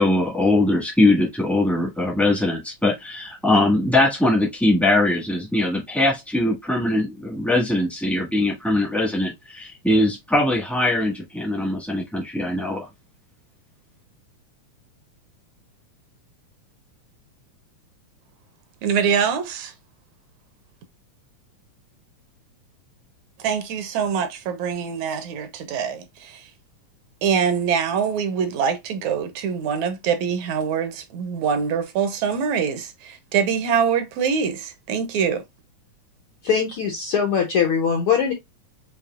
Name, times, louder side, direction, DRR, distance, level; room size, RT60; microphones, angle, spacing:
voice 1, 0.0-12.9, left 1 dB, ahead, 0.5 m, -21 dB
voice 2, 18.8-19.7 23.4-26.5 27.2-35.4, right 7 dB, 75° right, 2.0 m, -24 dB
voice 3, 36.4-38.3, left 7 dB, 80° left, 1.2 m, -21 dB
6.5 x 2.7 x 2.3 m
omnidirectional pair, 3.4 m